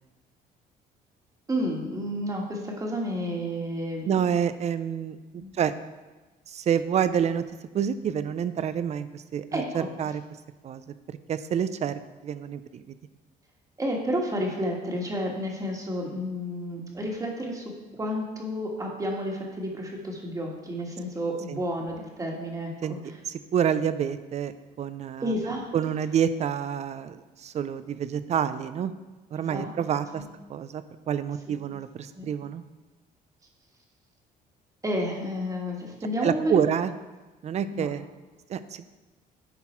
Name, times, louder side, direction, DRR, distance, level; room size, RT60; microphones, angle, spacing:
voice 1, 1.5-4.3 5.3-5.6 9.5-9.9 13.8-23.2 25.2-25.7 29.5-30.2 31.5-31.6 32.1-32.3 34.8-36.6 37.7-37.9, equal, 20° right, 0 dB, 1.5 m, -31 dB
voice 2, 4.1-5.7 6.5-7.4 7.7-10.2 10.6-12.9 21.5-21.6 22.8-23.0 23.3-25.3 25.7-28.9 29.3-30.2 30.5-32.6 36.2-36.9 37.4-38.0 38.5-38.8, right 8 dB, 40° right, 13 dB, 0.4 m, -28 dB
10.5 x 4.0 x 4.4 m, 1.2 s
cardioid pair, 110°, 17 cm